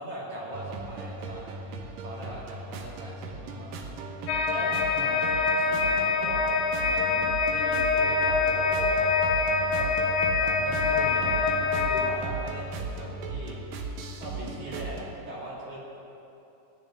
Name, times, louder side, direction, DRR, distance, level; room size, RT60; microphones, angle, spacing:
voice 1, 0.0-1.5 2.0-4.0 4.5-6.5 6.8-9.9 10.4-13.6 14.1-15.8, right 1 dB, 45° right, -5 dB, 3.0 m, -40 dB
sound 1, 0.5-15.1, right 3 dB, 75° right, 2.0 m, -37 dB
sound 2, 4.3-12.1, left 4 dB, 80° left, 3.2 m, -25 dB
16.5 x 6.9 x 9.8 m, 2.9 s
omnidirectional pair, 5.4 m